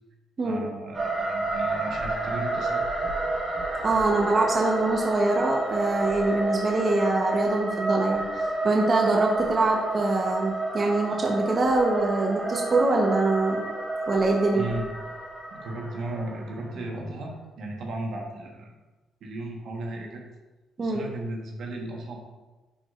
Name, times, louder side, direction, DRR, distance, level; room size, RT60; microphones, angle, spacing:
voice 1, 0.4-2.9 14.5-14.9 15.5-18.8 19.2-20.2 20.8-22.4, right 1 dB, 70° right, 0 dB, 1.3 m, -35 dB
sound 1, 0.9-16.9, right 2 dB, 25° right, 2.2 m, -30 dB
voice 2, 3.8-8.2 8.6-13.6 14.1-14.6 20.8-21.0, right 2 dB, 40° right, 0 dB, 1.0 m, -24 dB
10.5 x 4.8 x 2.5 m, 1.2 s
cardioid pair, 90°, 0 cm